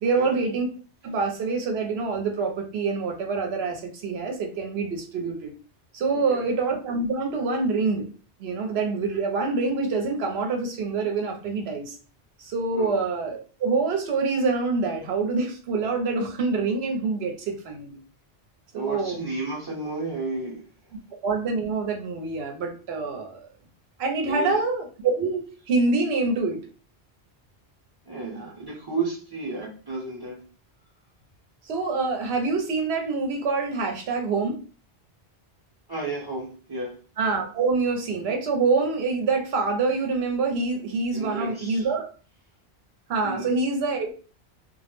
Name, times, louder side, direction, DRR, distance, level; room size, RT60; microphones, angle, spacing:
voice 1, 0.0-0.7 1.0-5.5 5.9-8.1 8.4-11.9 12.4-18.0 18.7-19.2 21.2-23.5 24.0-26.6 28.4-28.5 31.7-34.6 37.2-42.1 43.1-44.1, right 4 dB, 70° right, 3 dB, 0.9 m, -26 dB
voice 2, 6.1-6.4 12.7-13.0 18.7-20.6 24.2-24.6 28.0-30.4 35.9-37.0 41.1-41.9 43.2-43.5, right 3 dB, 25° right, -3 dB, 0.7 m, -32 dB
2.3 x 2.0 x 3.0 m, 0.38 s
omnidirectional pair, 1.1 m